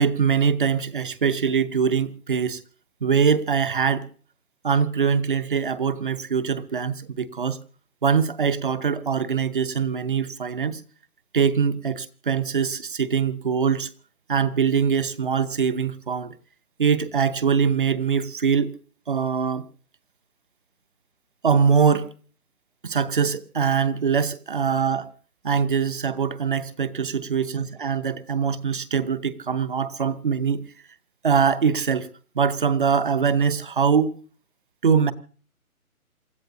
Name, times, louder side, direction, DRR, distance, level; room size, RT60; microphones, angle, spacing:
voice 1, 0.0-2.6 3.0-4.1 4.6-7.6 8.0-10.8 11.3-13.9 14.3-16.3 16.8-18.8 19.1-19.6 21.4-22.1 22.8-25.1 25.4-30.6 31.2-32.1 32.3-34.1 34.8-35.1, right 6 dB, 35° right, 0.8 m, -23 dB
28.0 x 14.0 x 2.7 m
figure-of-eight pair, 155°, 44 cm